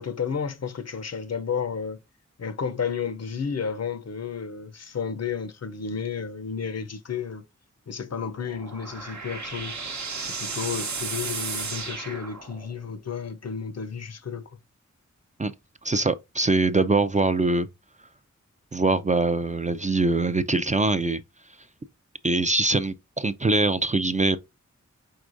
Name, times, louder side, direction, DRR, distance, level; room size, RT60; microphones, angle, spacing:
voice 1, 0.0-2.0 2.4-7.4 7.9-9.7 10.2-14.4, left 6 dB, 60° left, 0.6 m, -32 dB
sound 1, 8.3-12.9, right 4 dB, 65° right, 0.9 m, -34 dB
voice 2, 15.8-17.7 18.7-21.2 22.2-24.4, right 3 dB, 25° right, 0.4 m, -23 dB
4.7 x 4.4 x 2.5 m
wide cardioid pair, 75°, 30 cm